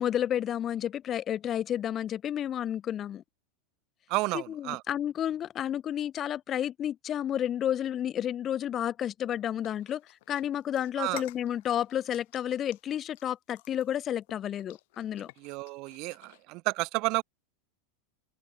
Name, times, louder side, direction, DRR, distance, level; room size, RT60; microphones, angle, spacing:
voice 1, 0.0-3.2 4.3-10.0 10.3-15.3, left 10 dB, 25° left, 0.4 m, -31 dB
voice 2, 4.1-4.8 11.0-11.2 15.4-17.2, right 24 dB, 40° right, 0.5 m, -31 dB
sound 1, 9.6-16.4, left 22 dB, 55° left, 4.5 m, -53 dB
open air
supercardioid pair, 155°, 0 cm